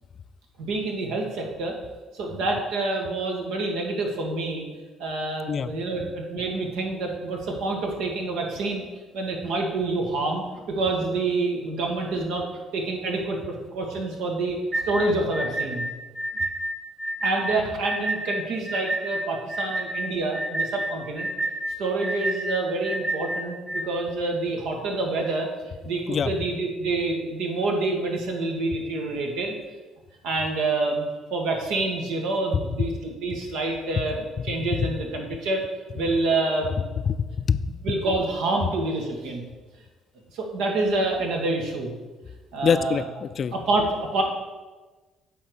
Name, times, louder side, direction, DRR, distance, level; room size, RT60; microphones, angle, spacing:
voice 1, 0.6-1.8 2.1-4.6 5.0-8.9 9.1-12.4 12.7-14.6 14.8-15.8 17.2-21.3 21.8-29.5 30.2-31.0 31.3-35.6 35.9-36.9 37.8-39.4 40.3-41.9 42.5-43.0 43.5-44.2, right 2 dB, 80° right, 1 dB, 1.5 m, -27 dB
sound 1, 14.7-23.9, right 1 dB, 25° right, 0.8 m, -29 dB
voice 2, 34.6-35.0 37.1-37.6 42.6-43.5, left 7 dB, 50° left, 14 dB, 0.4 m, -25 dB
8.5 x 3.7 x 6.3 m, 1.2 s
supercardioid pair, 80°, 0 cm